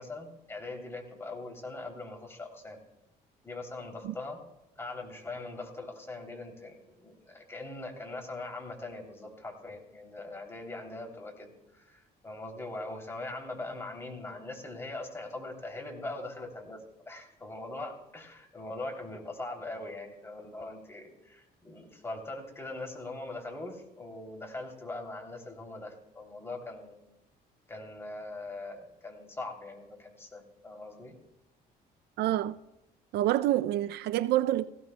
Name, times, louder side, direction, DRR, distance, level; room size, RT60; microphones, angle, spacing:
voice 1, 0.0-2.8 3.4-4.4 4.8-27.0 27.7-31.1, left 2 dB, 15° left, 3.0 m, -41 dB
voice 2, 32.2-32.6 33.1-34.7, right 14 dB, 75° right, 0.4 m, -27 dB
18.0 x 16.0 x 2.2 m
cardioid pair, 110°, 17 cm